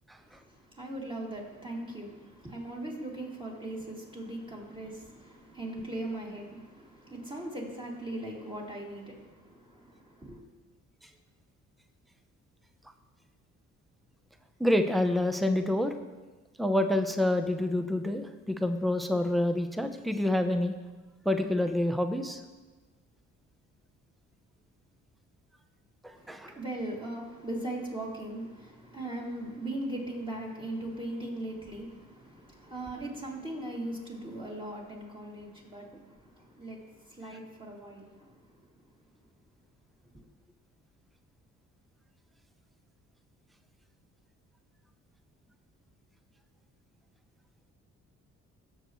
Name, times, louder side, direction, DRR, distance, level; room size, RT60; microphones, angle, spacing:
voice 1, 0.2-10.4 26.1-38.7, right 1 dB, 15° right, -4 dB, 2.6 m, -39 dB
voice 2, 14.6-15.9 16.6-20.7 21.2-22.4 26.0-26.5, left 1 dB, ahead, 7 dB, 0.7 m, -27 dB
17.5 x 6.8 x 3.1 m, 1.2 s
cardioid pair, 90°, 30 cm